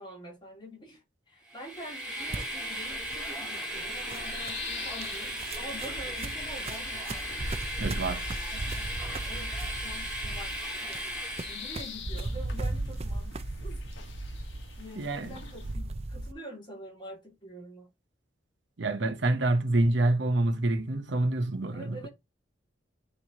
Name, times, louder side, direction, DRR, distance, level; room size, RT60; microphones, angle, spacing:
voice 1, 0.0-7.2 7.8-8.2 8.5-8.9 9.2-11.0 11.5-13.8 14.2-14.4 14.8-17.9 21.7-22.1, equal, 25° left, 2.6 m, -46 dB
Train, 1.5-12.0, equal, 5° right, 1.8 m, -36 dB
sound 1, 2.3-16.3, right 2 dB, 30° right, 0.5 m, -37 dB
sound 2, 4.2-15.7, left 7 dB, 70° left, 1.3 m, -47 dB
voice 2, 7.8-8.3 15.0-15.4 18.8-22.0, right 2 dB, 65° right, 0.9 m, -27 dB
9.7 x 3.3 x 2.9 m
head